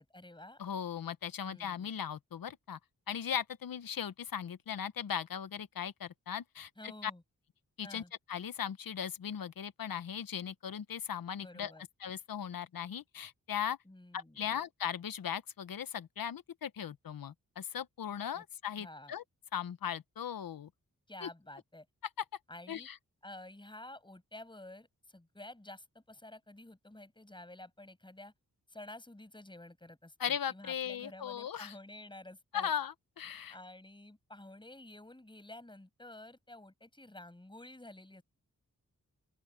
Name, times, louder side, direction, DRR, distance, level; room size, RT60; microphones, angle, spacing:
voice 1, 0.0-0.6 1.4-1.9 6.8-7.2 7.8-8.1 11.4-11.8 13.8-14.6 18.3-18.4 18.8-19.1 21.1-21.9 22.5-22.9 23.2-28.3 28.7-32.7 33.5-38.2, left 1 dB, 15° left, 6.7 m, -51 dB
voice 2, 0.6-2.8 3.1-7.1 7.8-8.0 8.3-11.7 12.0-13.8 14.1-19.2 19.5-20.7 21.2-21.3 22.2-22.3 22.7-23.0 30.2-31.7 32.5-33.5, left 8 dB, 85° left, 0.9 m, -38 dB
open air
wide cardioid pair, 105°, 34 cm